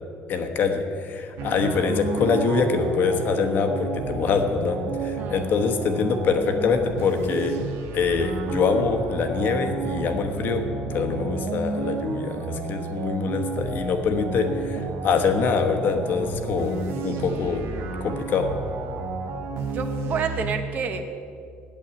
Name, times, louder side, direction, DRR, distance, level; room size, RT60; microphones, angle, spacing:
voice 1, 0.3-7.6 7.9-17.7 18.0-18.5, left 5 dB, 45° left, 6 dB, 1.1 m, -24 dB
sound 1, 1.4-20.5, right 3 dB, 75° right, 1.2 m, -32 dB
voice 2, 5.2-5.5 19.7-21.1, right 6 dB, 40° right, 7 dB, 1.0 m, -29 dB
8.8 x 8.3 x 9.3 m, 2.3 s
cardioid pair, 160°, 4 cm